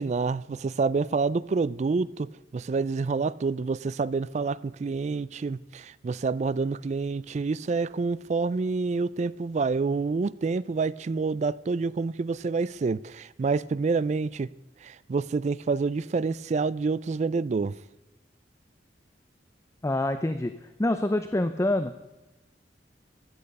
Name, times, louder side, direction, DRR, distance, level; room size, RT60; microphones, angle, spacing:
voice 1, 0.0-14.5 14.8-17.7, right 4 dB, 40° right, 0.3 m, -28 dB
voice 2, 19.8-20.5 20.8-21.9, left 1 dB, 15° left, 0.5 m, -26 dB
15.0 x 10.5 x 5.4 m
head